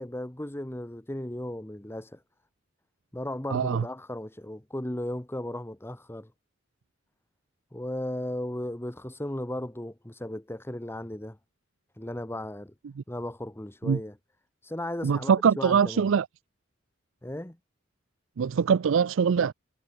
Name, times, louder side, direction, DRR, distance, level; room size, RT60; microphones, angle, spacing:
voice 1, 0.0-2.2 3.1-6.3 7.7-11.4 12.0-12.7 13.1-14.1 14.6-16.1 17.2-17.6, left 1 dB, 10° left, 1.1 m, -36 dB
voice 2, 3.5-3.8 13.0-13.1 13.8-14.0 15.0-16.3 18.4-19.5, right 6 dB, 80° right, 0.4 m, -23 dB
head